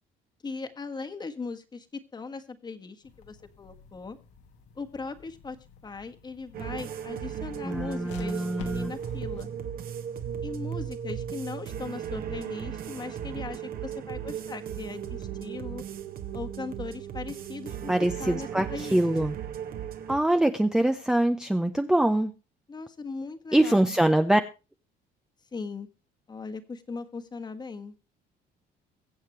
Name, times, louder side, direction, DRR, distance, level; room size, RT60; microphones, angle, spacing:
voice 1, 0.4-4.2 4.7-9.5 10.4-15.8 16.3-17.9 18.2-19.0 22.7-24.0 25.5-25.9 26.3-27.9, left 4 dB, 25° left, 7 dB, 1.5 m, -39 dB
sound 1, 3.0-9.4, left 7 dB, 90° left, 2.5 m, -50 dB
sound 2, 6.5-20.2, right 9 dB, 55° right, 1.6 m, -36 dB
voice 2, 7.6-8.9 17.9-19.4 20.1-22.3 23.5-24.4, right 1 dB, 5° right, 7 dB, 0.7 m, -24 dB
22.5 x 7.9 x 3.1 m, 0.31 s
cardioid pair, 140°, 18 cm